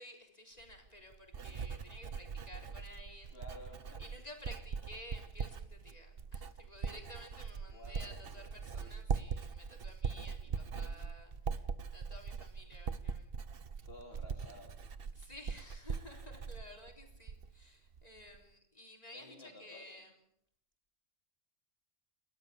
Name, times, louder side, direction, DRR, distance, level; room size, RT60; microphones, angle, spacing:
voice 1, 0.0-3.4 4.0-13.5 15.1-20.1, left 1 dB, 35° left, 2 dB, 4.2 m, -54 dB
Writing, 0.6-17.6 17.9-18.4, right 6 dB, 55° right, 1.2 m, -41 dB
voice 2, 3.3-4.0 7.7-8.1 8.8-8.9 13.8-14.9 19.1-19.9, left 1 dB, 60° left, 2 dB, 4.3 m, -53 dB
29.0 x 13.0 x 7.0 m, 0.70 s
omnidirectional pair, 1.1 m